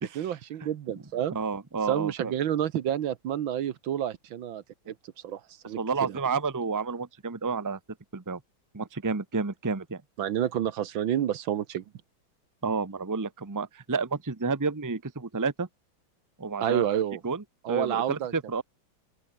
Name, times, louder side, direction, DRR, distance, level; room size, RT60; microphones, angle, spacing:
voice 1, 0.1-1.4 1.9-4.9 5.2-6.2 10.2-11.8 16.6-17.2 17.6-18.3, right 10 dB, 75° right, 1.8 m, -29 dB
voice 2, 1.3-2.3 5.8-7.8 8.1-8.4 8.7-10.0 12.6-15.7 16.4-18.6, right 4 dB, 15° right, 0.9 m, -30 dB
open air
omnidirectional pair, 2.3 m